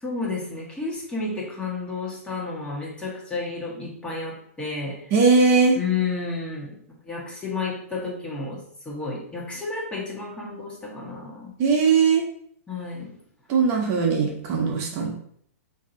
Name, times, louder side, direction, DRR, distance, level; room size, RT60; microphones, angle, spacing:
voice 1, 0.0-5.1 5.8-6.8 7.0-11.5 12.7-13.2 13.8-13.9, left 4 dB, 10° left, -4 dB, 1.1 m, -31 dB
voice 2, 5.1-5.8 11.6-12.2 13.5-15.1, right 5 dB, 40° right, -1 dB, 0.9 m, -19 dB
3.2 x 2.7 x 3.8 m, 0.64 s
hypercardioid pair, 120°, 8 cm